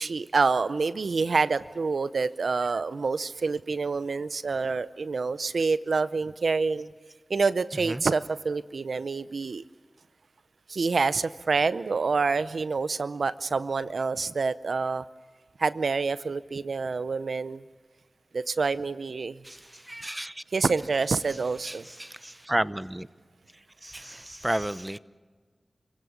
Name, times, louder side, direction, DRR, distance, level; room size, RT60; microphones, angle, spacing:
voice 1, 0.0-6.9 7.3-9.6 10.7-15.0 15.6-17.6 18.3-19.4 20.5-21.8, right 4 dB, 85° right, 15 dB, 0.6 m, -27 dB
voice 2, 19.4-20.4 21.6-23.1 23.8-25.0, right 1 dB, 20° right, 16 dB, 0.8 m, -32 dB
30.0 x 16.5 x 8.7 m, 1.4 s
cardioid pair, 40°, 0 cm